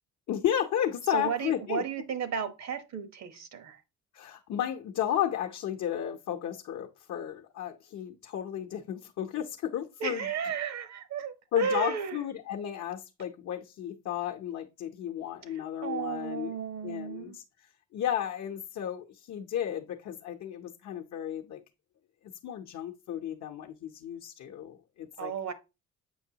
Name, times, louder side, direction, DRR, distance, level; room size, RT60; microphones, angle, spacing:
voice 1, 0.3-1.8 4.1-10.3 11.5-16.5 16.8-21.6 22.4-25.3, left 10 dB, 65° left, 0.8 m, -33 dB
voice 2, 1.1-3.8 10.0-12.2 15.5-17.4 25.2-25.5, right 6 dB, 60° right, 1.2 m, -34 dB
7.8 x 5.3 x 2.8 m
cardioid pair, 90°, 30 cm